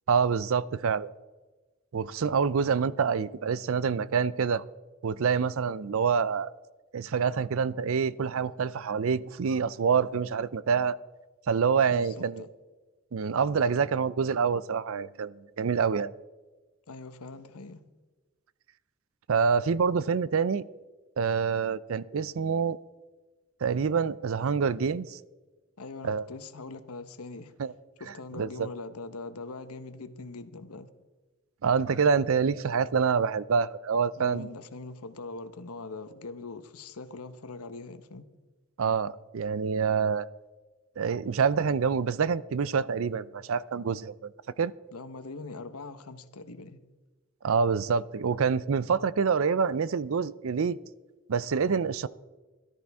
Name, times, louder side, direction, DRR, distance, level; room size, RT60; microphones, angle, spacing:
voice 1, 0.1-1.1 1.9-4.6 5.0-6.5 6.9-11.0 11.5-12.4 13.1-16.1 19.3-20.6 21.2-22.8 23.6-25.2 26.0-26.3 27.6-27.7 28.4-28.7 31.6-34.5 38.8-40.3 41.0-44.3 44.6-44.7 47.4-50.8 51.3-52.1, right 6 dB, 70° right, 0.4 m, -26 dB
voice 2, 11.9-12.5 16.9-17.8 25.8-27.5 28.0-30.9 34.2-38.3 44.9-46.8, left 3 dB, 85° left, 1.0 m, -42 dB
18.0 x 13.0 x 3.5 m
head